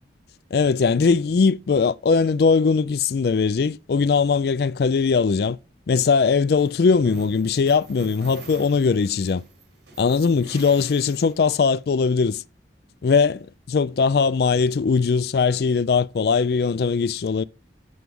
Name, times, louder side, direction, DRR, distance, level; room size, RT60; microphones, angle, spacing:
voice 1, 0.5-5.6 5.9-9.4 10.0-12.4 13.0-17.4, left 5 dB, 60° left, 0.4 m, -20 dB
sound 1, 6.6-11.7, right 2 dB, 80° right, 4.1 m, -44 dB
8.1 x 7.7 x 3.5 m
head